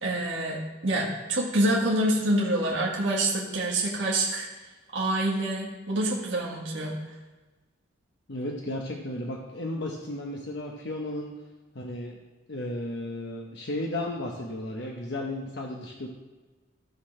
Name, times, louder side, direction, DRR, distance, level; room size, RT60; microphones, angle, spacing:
voice 1, 0.0-4.5 4.9-7.0, right 1 dB, 70° right, -4 dB, 1.8 m, -26 dB
voice 2, 8.3-11.3 11.7-12.2 12.5-16.1, left 1 dB, 60° left, 0 dB, 1.0 m, -34 dB
15.0 x 6.5 x 3.3 m, 1.2 s
head